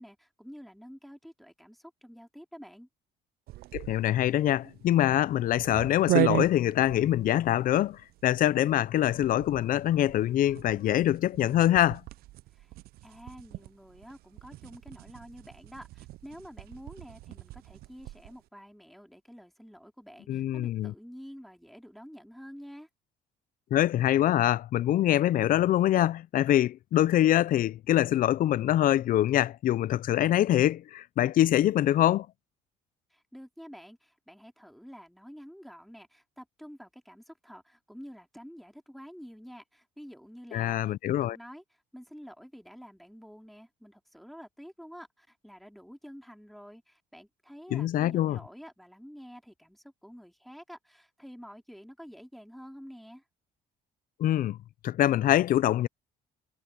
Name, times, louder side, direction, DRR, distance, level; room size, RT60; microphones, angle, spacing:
voice 1, 0.0-2.9 12.5-12.7 13.0-22.9 33.1-40.9 41.2-53.2, equal, ahead, 2.7 m, -49 dB
sound 1, 3.5-18.4, right 16 dB, 65° right, 0.4 m, -37 dB
voice 2, 3.7-12.0 20.3-20.9 23.7-32.3 40.5-41.4 47.7-48.4 54.2-54.6 54.8-55.9, left 12 dB, 55° left, 0.5 m, -24 dB
cardioid pair, 110°, 17 cm